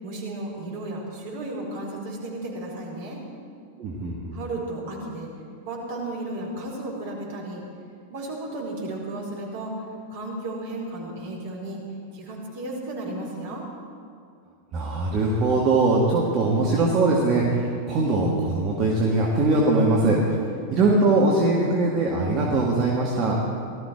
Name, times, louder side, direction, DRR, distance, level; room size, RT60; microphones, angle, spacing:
voice 1, 0.0-3.2 4.3-5.3 5.6-7.6 8.1-9.8 10.1-11.8 12.1-13.7 20.3-20.6, right 2 dB, 55° right, -2 dB, 4.5 m, -34 dB
voice 2, 3.8-4.3 14.7-20.2 20.7-23.3, right 2 dB, 35° right, -3 dB, 2.1 m, -21 dB
18.5 x 13.5 x 4.7 m, 2.3 s
figure-of-eight pair, 90°, 0 cm